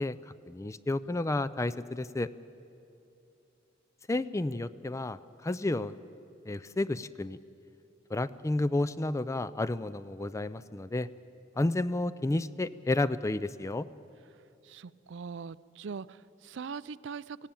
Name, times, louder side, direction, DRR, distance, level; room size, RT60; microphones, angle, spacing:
voice 1, 0.0-2.3 4.1-5.9 6.5-7.4 8.1-11.1 11.6-13.9, left 2 dB, 15° left, 16 dB, 0.4 m, -31 dB
voice 2, 14.6-17.5, right 5 dB, 65° right, 18 dB, 0.4 m, -41 dB
18.5 x 16.5 x 9.0 m, 2.8 s
head